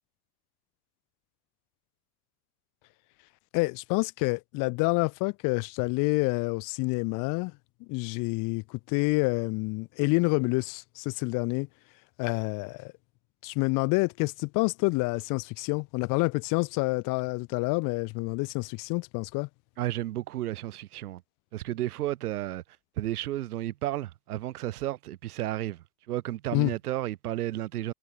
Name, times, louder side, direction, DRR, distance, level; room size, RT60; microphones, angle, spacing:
voice 1, 3.5-7.5 7.9-11.7 12.2-12.9 13.4-19.5 26.5-26.7, left 27 dB, 45° left, 5.8 m, -28 dB
voice 2, 19.8-21.2 21.5-22.6 23.0-27.9, right 14 dB, 90° right, 4.6 m, -32 dB
supercardioid pair, 155°, 44 cm